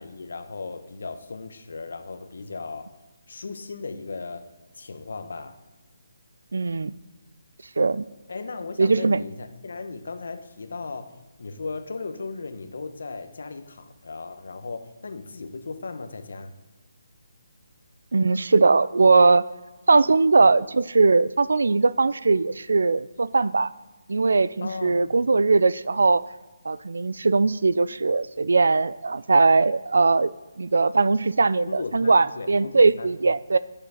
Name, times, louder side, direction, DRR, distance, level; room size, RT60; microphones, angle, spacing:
voice 1, 0.0-2.9 3.3-4.4 4.7-5.6 8.3-16.5 24.6-25.1 31.7-33.1, left 4 dB, 60° left, 8 dB, 1.0 m, -36 dB
voice 2, 6.5-6.9 7.8-8.0 8.8-9.2 18.1-19.4 19.9-23.7 24.1-26.2 26.6-30.3 30.6-33.6, right 3 dB, 75° right, 17 dB, 0.4 m, -20 dB
9.7 x 6.9 x 5.0 m, 1.2 s
hypercardioid pair, 180°, 0 cm